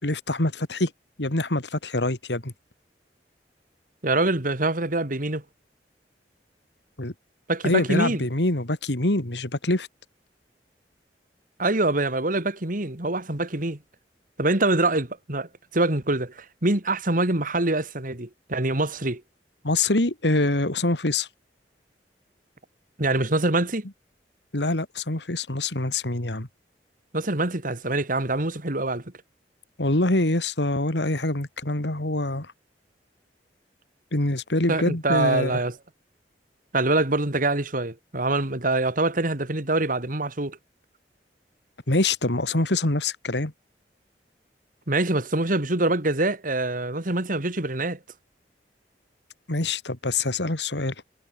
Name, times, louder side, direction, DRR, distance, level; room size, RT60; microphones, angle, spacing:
voice 1, 0.0-0.9 1.2-2.5 7.0-7.1 7.6-9.9 19.6-21.3 24.5-26.5 29.8-32.5 34.1-35.6 41.9-43.5 49.5-50.9, left 2 dB, 75° left, 2.7 m, -25 dB
voice 2, 4.0-5.4 7.5-8.2 11.6-13.8 14.4-19.2 23.0-23.9 27.1-29.0 34.7-35.7 36.7-40.6 44.9-48.0, right 2 dB, 50° right, 2.7 m, -25 dB
head